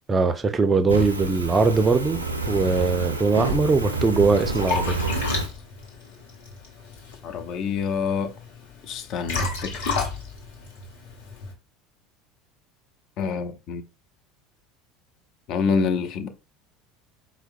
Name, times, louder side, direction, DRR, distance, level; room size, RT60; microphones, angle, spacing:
voice 1, 0.1-2.2 2.5-5.0, right 4 dB, 25° right, 0.4 m, -21 dB
Fire, 0.9-5.5, right 3 dB, 85° right, 0.4 m, -29 dB
Liquid, 3.8-11.5, left 3 dB, 65° left, 1.0 m, -32 dB
voice 2, 7.2-8.3 8.9-10.0 13.2-13.8 15.5-16.3, left 5 dB, 50° left, 0.5 m, -27 dB
4.4 x 2.0 x 2.6 m
figure-of-eight pair, 70°, 0 cm